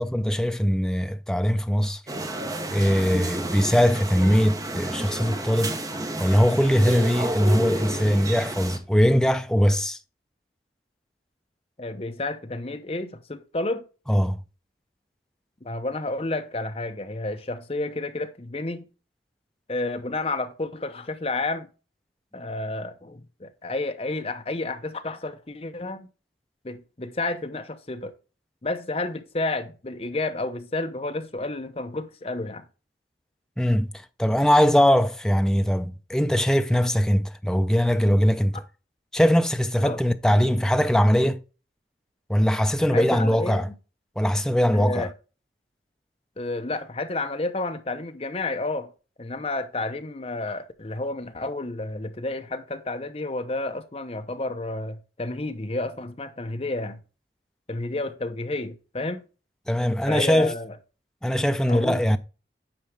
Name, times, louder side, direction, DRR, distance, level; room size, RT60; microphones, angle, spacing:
voice 1, 0.0-2.0 2.7-5.8 6.2-10.0 14.1-14.4 33.6-33.9 34.2-38.6 39.1-41.4 42.3-43.7 44.2-45.1 59.7-60.5 61.2-62.2, equal, 5° left, 0.4 m, -21 dB
sound 1, 2.1-8.8, right 2 dB, 20° right, 0.7 m, -31 dB
voice 2, 11.8-13.8 15.6-18.9 19.7-21.7 22.3-26.1 26.6-28.1 28.6-32.6 39.8-40.0 42.9-43.8 44.7-45.1 46.4-48.9 49.2-57.0 57.7-59.2 60.1-60.8 61.7-62.0, left 2 dB, 35° left, 0.7 m, -31 dB
8.7 x 4.9 x 3.3 m
head